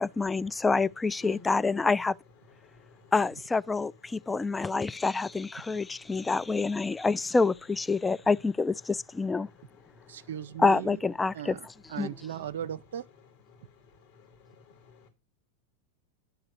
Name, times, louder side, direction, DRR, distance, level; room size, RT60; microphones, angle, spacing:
voice 1, 0.0-2.1 3.1-9.5 10.6-11.6 12.0-12.1, left 4 dB, 15° left, 0.4 m, -27 dB
voice 2, 2.6-3.1 4.2-4.3 5.6-6.3 9.8-10.3 13.5-15.1, left 8 dB, 65° left, 2.9 m, -54 dB
voice 3, 10.1-11.0 11.3-13.1, right 10 dB, 75° right, 0.5 m, -38 dB
11.0 x 3.9 x 6.8 m
hypercardioid pair, 105°, 0 cm